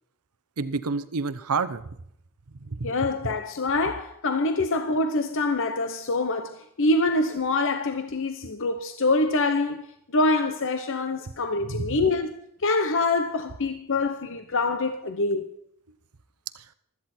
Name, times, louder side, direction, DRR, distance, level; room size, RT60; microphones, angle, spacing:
voice 1, 0.6-1.9 2.5-3.1 11.7-12.0 16.5-16.6, right 4 dB, 85° right, 0.9 m, -29 dB
voice 2, 2.8-9.9 10.1-12.3 12.6-15.5, left 2 dB, 60° left, 0.9 m, -25 dB
16.0 x 13.0 x 4.4 m
head